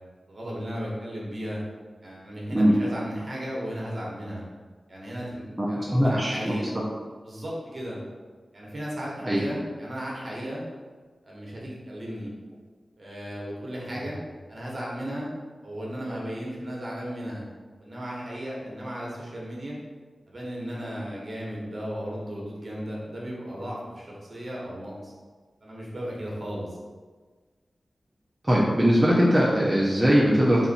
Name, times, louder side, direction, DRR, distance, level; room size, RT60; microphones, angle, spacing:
voice 1, 0.3-1.6 2.0-4.4 4.9-6.7 7.2-8.0 8.5-10.6 11.2-12.3 13.0-14.2 14.5-15.3 15.6-17.4 17.8-19.8 20.3-25.1 25.6-26.8, equal, 45° right, -4 dB, 1.2 m, -35 dB
voice 2, 5.9-6.5 9.2-9.4 28.4-30.7, equal, 10° right, -6 dB, 0.6 m, -20 dB
4.2 x 2.6 x 4.1 m, 1.4 s
wide cardioid pair, 100°, 0 cm